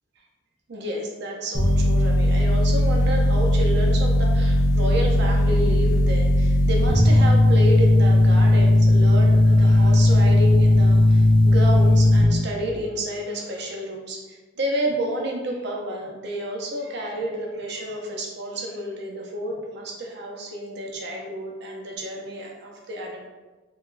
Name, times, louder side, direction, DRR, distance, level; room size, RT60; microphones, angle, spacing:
voice 1, 0.7-23.2, right 1 dB, 60° right, 0 dB, 0.6 m, -30 dB
sound 1, 1.5-12.2, left 1 dB, 60° left, 0.8 m, -17 dB
3.7 x 2.3 x 2.5 m, 1.3 s
head